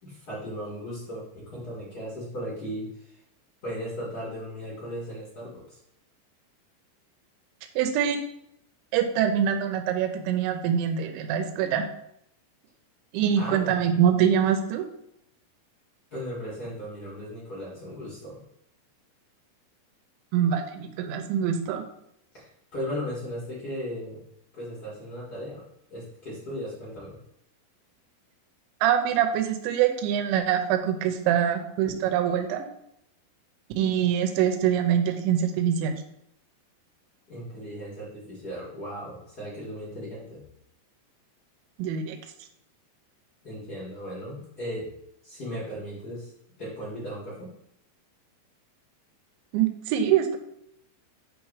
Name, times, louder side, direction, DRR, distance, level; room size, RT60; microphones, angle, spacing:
voice 1, 0.0-3.2 3.6-5.8 13.3-13.8 16.1-18.4 22.3-24.2 24.5-25.6 25.9-27.2 37.3-40.5 43.4-44.9 45.2-46.3 46.6-47.5, equal, 55° left, -7 dB, 1.0 m, -36 dB
voice 2, 7.8-8.2 8.9-11.9 13.1-14.9 20.3-21.8 28.8-32.7 33.8-36.0 41.8-42.2 49.5-50.4, right 9 dB, 80° right, 6 dB, 2.8 m, -24 dB
8.3 x 3.4 x 4.9 m, 0.76 s
omnidirectional pair, 5.7 m